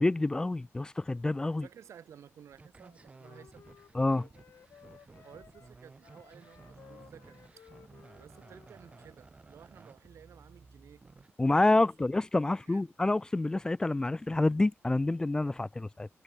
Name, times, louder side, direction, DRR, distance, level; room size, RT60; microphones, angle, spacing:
voice 1, 0.0-1.7 3.9-4.3 11.4-16.1, left 2 dB, 15° left, 0.7 m, -28 dB
voice 2, 1.6-3.6 5.2-7.6 8.1-11.0 11.4-12.1 12.6-12.9, right 9 dB, 80° right, 3.2 m, -55 dB
sound 1, 2.5-11.3, right 3 dB, 25° right, 4.4 m, -55 dB
Wind instrument woodwind instrument, 2.8-9.2, left 8 dB, 70° left, 2.5 m, -58 dB
wide cardioid pair, 165°, 5 cm